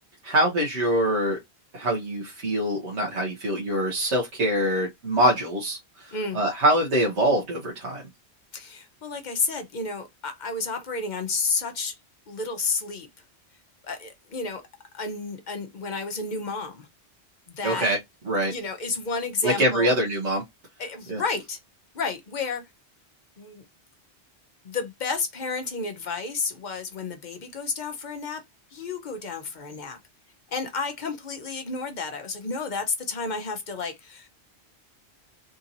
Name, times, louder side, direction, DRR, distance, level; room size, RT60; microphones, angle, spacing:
voice 1, 0.2-1.4 1.7-8.0 17.6-18.0 18.2-18.5 19.4-20.4 21.1-21.2, right 1 dB, 90° right, 1.3 m, -24 dB
voice 2, 6.1-6.4 8.5-12.0 12.3-13.1 13.8-14.6 14.9-16.9 17.5-17.9 18.5-19.9 20.8-21.6 21.9-22.6 23.4-23.6 24.6-28.4 28.7-30.0 30.5-34.3, left 4 dB, 45° left, 0.8 m, -31 dB
3.6 x 2.8 x 2.6 m
omnidirectional pair, 1.1 m